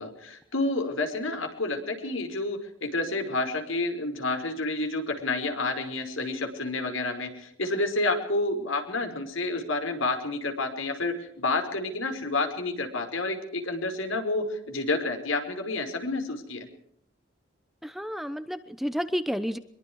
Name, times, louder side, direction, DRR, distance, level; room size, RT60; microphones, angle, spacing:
voice 1, 0.0-16.7, left 2 dB, 80° left, 6 dB, 5.3 m, -29 dB
voice 2, 17.8-19.6, equal, ahead, 11 dB, 0.9 m, -31 dB
25.0 x 22.5 x 4.8 m, 0.69 s
head